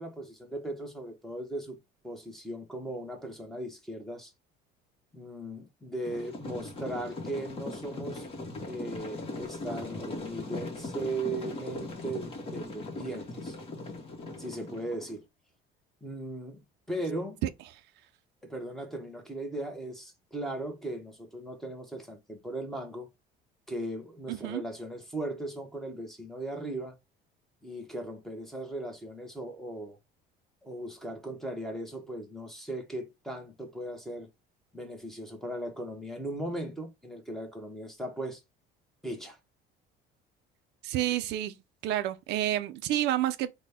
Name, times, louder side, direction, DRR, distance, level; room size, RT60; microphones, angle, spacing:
voice 1, 0.0-1.8 2.0-4.3 5.1-13.6 14.4-15.2 16.0-16.6 16.9-17.4 18.4-23.1 23.7-27.0 27.6-30.0 30.6-34.3 34.7-38.4 39.0-39.4, right 1 dB, ahead, 0.9 m, -38 dB
sound 1, 6.0-15.1, left 2 dB, 30° left, 1.2 m, -39 dB
voice 2, 24.3-24.6 40.8-41.5 41.8-43.5, right 13 dB, 65° right, 0.4 m, -29 dB
4.0 x 2.2 x 3.4 m
cardioid pair, 135°, 19 cm